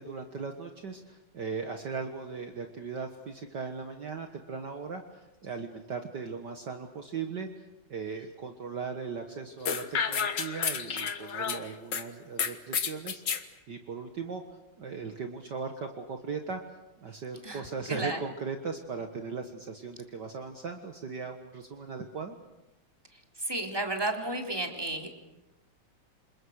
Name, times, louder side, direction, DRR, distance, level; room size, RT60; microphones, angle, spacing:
voice 1, 0.0-14.4 14.8-16.6 17.0-22.4, right 5 dB, 55° right, 5 dB, 2.0 m, -38 dB
sound 1, 9.6-12.0 12.4-13.4, left 7 dB, 55° left, 2.0 m, -31 dB
voice 2, 17.9-18.2 23.5-25.1, right 2 dB, 10° right, 3 dB, 3.2 m, -32 dB
28.5 x 26.5 x 6.5 m, 0.96 s
omnidirectional pair, 2.4 m